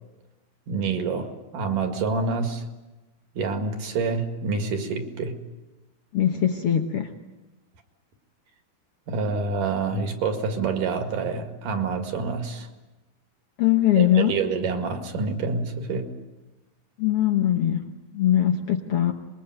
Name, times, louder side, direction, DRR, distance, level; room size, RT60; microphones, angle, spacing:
voice 1, 0.7-2.6 3.3-5.4 9.1-12.7 14.0-16.1, right 4 dB, 60° right, 6 dB, 3.4 m, -27 dB
voice 2, 6.1-7.1 13.6-14.4 17.0-19.1, left 11 dB, 85° left, 5 dB, 1.2 m, -21 dB
25.5 x 22.0 x 9.1 m, 1.1 s
omnidirectional pair, 4.4 m